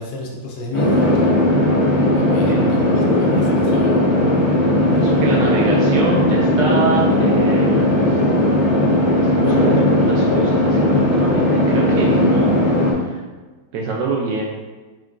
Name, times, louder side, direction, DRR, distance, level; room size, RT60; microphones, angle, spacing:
voice 1, 0.0-1.3 2.1-4.0, left 2 dB, 70° left, 0 dB, 1.3 m, -30 dB
sound 1, 0.7-12.9, left 1 dB, 25° left, 0.8 m, -17 dB
voice 2, 4.9-7.9 9.1-12.6 13.0-13.2 13.7-14.4, right 4 dB, 75° right, -2 dB, 1.0 m, -25 dB
4.4 x 4.4 x 2.5 m, 1.3 s
omnidirectional pair, 2.3 m